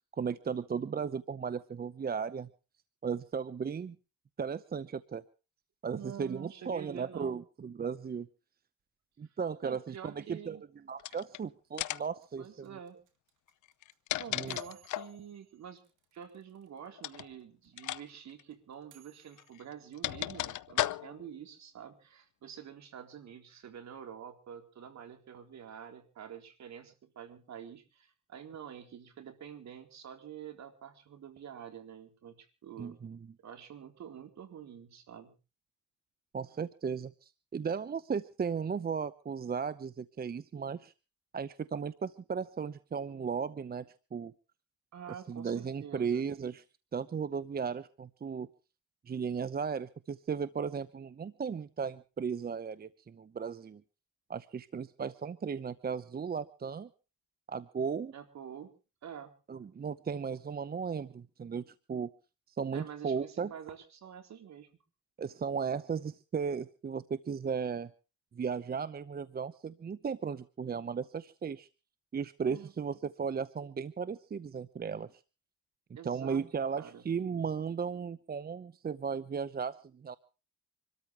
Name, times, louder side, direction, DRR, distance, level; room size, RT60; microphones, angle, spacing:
voice 1, 0.1-2.5 3.0-4.0 4.4-5.2 5.8-8.3 9.2-10.6 10.9-12.7 14.3-14.6 32.8-33.2 36.3-40.9 41.3-43.9 44.1-44.3 45.3-46.6 46.9-48.5 49.1-53.8 54.3-56.9 57.5-58.1 59.5-62.1 62.5-63.5 65.2-67.9 68.3-71.7 72.1-75.1 76.0-80.2, right 6 dB, 30° right, 15 dB, 0.8 m, -36 dB
voice 2, 5.9-7.4 9.6-10.6 12.4-13.0 14.2-15.8 16.1-33.0 33.4-35.4 44.9-46.3 58.1-58.7 59.0-59.3 62.7-64.7 72.5-72.7 75.9-76.4 76.8-77.0, right 8 dB, 65° right, 6 dB, 3.9 m, -47 dB
sound 1, 11.0-11.4 11.8-12.2 13.7-15.2 17.0-17.3 17.8-18.0 18.3-18.4 19.4-21.3, left 15 dB, 75° left, 0.7 m, -35 dB
sound 2, 11.7-16.9 17.1-17.2 17.4-19.7, right 11 dB, 80° right, 2.9 m, -64 dB
26.0 x 13.5 x 3.3 m, 0.34 s
cardioid pair, 90°, 30 cm